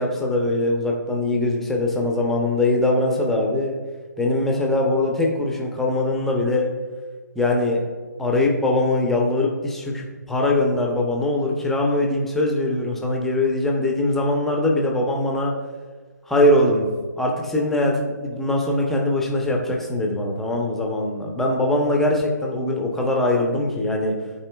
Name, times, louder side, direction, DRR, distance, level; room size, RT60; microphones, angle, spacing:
voice 1, 0.0-3.8 4.2-6.7 7.3-7.9 8.2-15.5 16.3-16.9 17.2-24.1, left 1 dB, 5° left, -1 dB, 0.7 m, -22 dB
12.0 x 4.3 x 2.3 m, 1.5 s
figure-of-eight pair, 150°, 10 cm